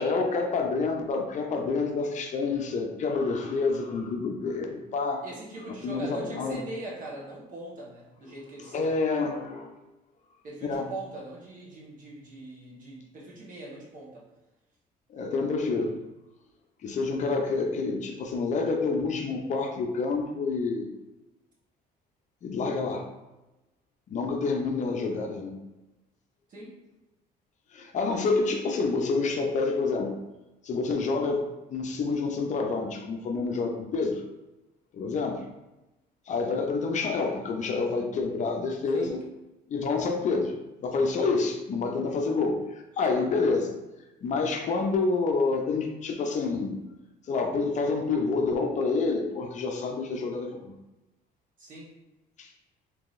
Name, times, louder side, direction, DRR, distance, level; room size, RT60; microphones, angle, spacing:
voice 1, 0.0-5.2 5.8-6.6 8.7-9.7 10.6-10.9 15.1-16.0 16.8-20.9 22.4-23.1 24.1-25.6 27.7-30.2 30.6-34.2 34.9-35.4 36.3-39.2 39.7-43.8 44.2-46.8 47.3-50.7 52.4-52.5, left 4 dB, 45° left, 3 dB, 0.5 m, -28 dB
voice 2, 5.2-8.9 10.4-14.2 26.5-26.7 38.9-39.1 51.6-51.9, right 2 dB, 50° right, -5 dB, 1.2 m, -41 dB
3.7 x 2.8 x 2.5 m, 1.0 s
cardioid pair, 110°, 17 cm